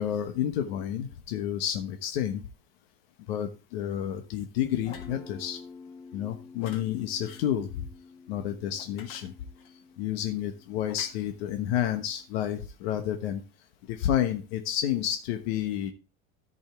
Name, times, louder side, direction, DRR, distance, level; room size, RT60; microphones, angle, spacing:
voice 1, 0.0-2.4 3.3-5.6 6.1-7.9 8.3-9.3 10.0-13.4 13.9-15.9, left 10 dB, 80° left, 6 dB, 1.2 m, -30 dB
sound 1, 4.8-5.2 6.6-6.8 7.2-7.5 8.8-9.7 10.9-11.1, left 7 dB, 55° left, 1.8 m, -47 dB
Guitar, 4.8-12.5, left 4 dB, 15° left, 1.0 m, -50 dB
14.0 x 5.6 x 3.5 m, 0.32 s
cardioid pair, 165°, 29 cm